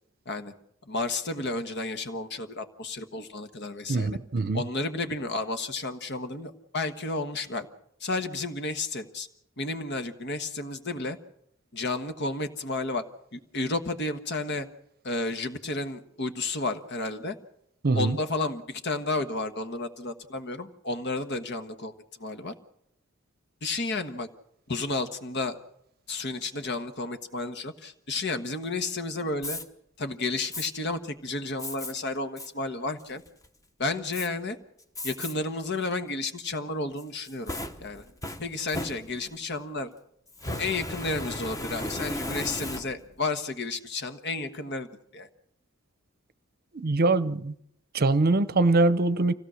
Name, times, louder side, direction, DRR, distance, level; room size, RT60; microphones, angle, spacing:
voice 1, 0.9-4.1 4.5-7.7 8.0-9.3 9.6-11.2 11.7-13.0 13.3-14.7 15.0-17.4 17.9-21.9 22.2-22.5 23.6-24.3 24.7-25.6 26.1-29.6 30.0-33.2 33.8-34.6 35.0-37.5 37.8-38.0 38.4-39.9 40.6-45.3, left 2 dB, 55° left, 1.4 m, -32 dB
voice 2, 3.9-4.6 17.8-18.2 46.7-47.5 47.9-49.3, right 3 dB, 50° right, 0.7 m, -23 dB
Fire, 29.4-29.6 30.5-30.7 31.6-31.9 32.4-32.5 33.0-33.5 34.1-34.3 35.0-35.3 35.8-35.9 37.0-39.5 40.3-43.2, left 1 dB, 15° left, 1.1 m, -35 dB
25.0 x 16.5 x 6.4 m
head